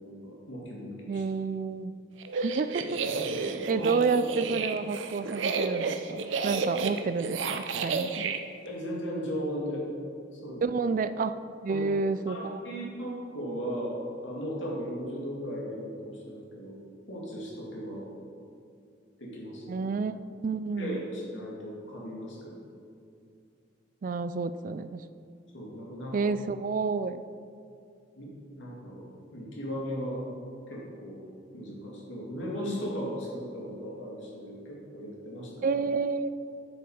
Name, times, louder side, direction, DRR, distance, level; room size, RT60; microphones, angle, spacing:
voice 1, 0.0-1.2 3.7-3.9 8.6-9.9 10.3-10.6 11.7-11.9 12.3-16.8 17.1-18.1 19.2-19.8 20.8-22.6 25.5-26.1 28.1-28.3 28.6-30.3 30.7-31.2 31.5-35.7, equal, 85° left, -3 dB, 2.3 m, -37 dB
voice 2, 1.1-1.9 2.3-3.0 3.3-8.4 10.6-11.3 11.6-12.6 19.7-20.1 20.4-21.0 24.0-25.0 26.1-27.2 35.6-36.3, right 4 dB, 45° right, 13 dB, 0.3 m, -30 dB
sound 1, 2.2-8.4, right 4 dB, 90° right, 0.6 m, -31 dB
9.0 x 7.0 x 4.9 m, 2.5 s
head